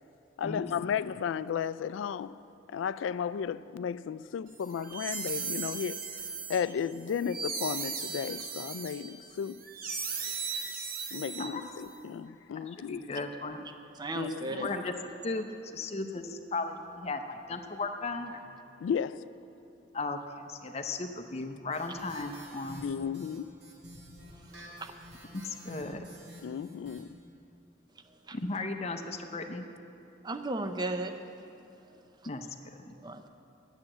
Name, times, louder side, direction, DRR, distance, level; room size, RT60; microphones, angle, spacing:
voice 1, 0.4-2.4 2.7-6.1 6.5-9.6 11.1-13.1 14.1-14.7 18.8-19.3 22.8-23.5 26.4-27.1, left 7 dB, 85° left, 0.3 m, -34 dB
sound 1, 4.6-11.9, right 5 dB, 50° right, 0.9 m, -37 dB
voice 2, 12.8-13.7 14.6-14.9 15.2-18.5 19.9-22.8 25.3-26.0 28.3-29.7 32.2-32.5 32.8-32.9, left 3 dB, 35° left, 0.6 m, -36 dB
voice 3, 14.0-14.7 24.5-24.9 28.3-28.4 30.2-31.1 33.0-33.3, right 2 dB, 20° right, 0.5 m, -35 dB
sound 2, 21.7-27.0, equal, 70° right, 3.3 m, -49 dB
11.0 x 7.3 x 7.8 m
head